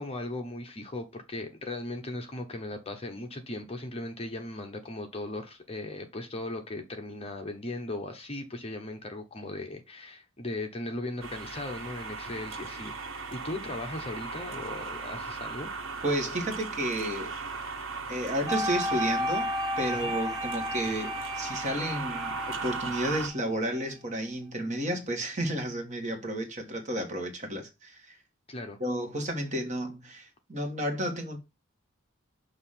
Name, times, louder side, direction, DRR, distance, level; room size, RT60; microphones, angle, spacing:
voice 1, 0.0-12.9 13.3-15.7 19.9-20.1 28.5-28.8, left 2 dB, 30° left, 1.0 m, -38 dB
sound 1, 11.2-23.3, right 4 dB, 85° right, 1.3 m, -38 dB
voice 2, 16.0-17.3 18.1-28.2 28.8-31.4, right 1 dB, 35° right, 1.6 m, -32 dB
sound 2, 18.5-23.6, left 1 dB, 20° right, 0.6 m, -33 dB
6.5 x 3.0 x 5.6 m
head